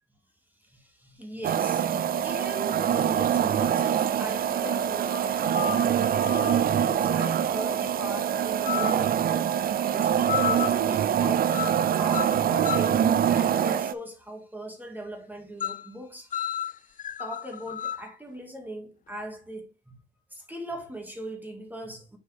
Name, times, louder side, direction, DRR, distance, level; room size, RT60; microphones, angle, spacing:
voice 1, 0.6-6.0 6.4-9.5 9.9-13.0 13.3-19.9 20.3-22.2, equal, 10° right, 2.0 m, -40 dB
sound 1, 1.4-13.9, right 9 dB, 50° right, 0.4 m, -24 dB
sound 2, 4.1-4.2 5.1-6.6 8.6-9.1 10.3-10.8 11.5-11.8 12.1-13.0 15.6-15.9 16.3-18.1, left 9 dB, 40° left, 0.4 m, -32 dB
6.3 x 4.9 x 3.4 m
cardioid pair, 90°, 20 cm